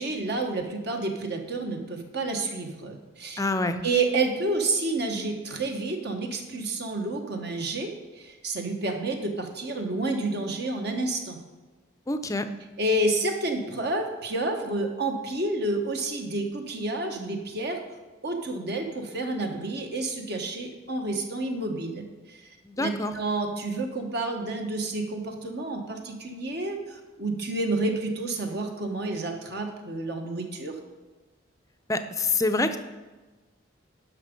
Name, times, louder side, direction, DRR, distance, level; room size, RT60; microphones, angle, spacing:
voice 1, 0.0-3.4 3.8-11.4 12.8-17.8 18.2-22.5 22.8-30.7, right 2 dB, 55° right, 3 dB, 1.3 m, -29 dB
voice 2, 3.4-3.8 12.1-12.5 22.7-23.1 31.9-32.8, left 2 dB, 15° left, 9 dB, 0.5 m, -26 dB
10.5 x 6.1 x 5.2 m, 1.2 s
head